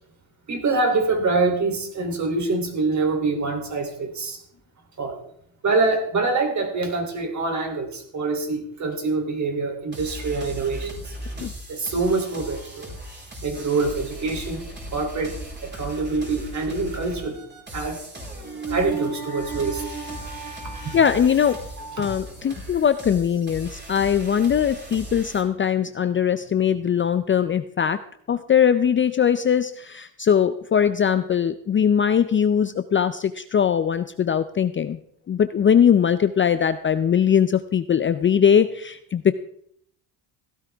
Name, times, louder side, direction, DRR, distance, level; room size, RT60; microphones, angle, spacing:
voice 1, 0.5-4.4 5.0-5.2 5.6-11.0 11.7-12.9 13.4-14.7 14.9-15.4 15.6-17.4 17.7-18.0 18.4-21.0 21.5-22.1, right 3 dB, 40° right, 4 dB, 3.3 m, -25 dB
sound 1, 9.9-25.4, right 1 dB, 25° right, 4.4 m, -38 dB
voice 2, 20.9-21.6 22.0-35.0 35.3-39.3, left 8 dB, 30° left, 11 dB, 0.5 m, -21 dB
16.0 x 12.5 x 3.5 m, 0.67 s
cardioid pair, 110°, 44 cm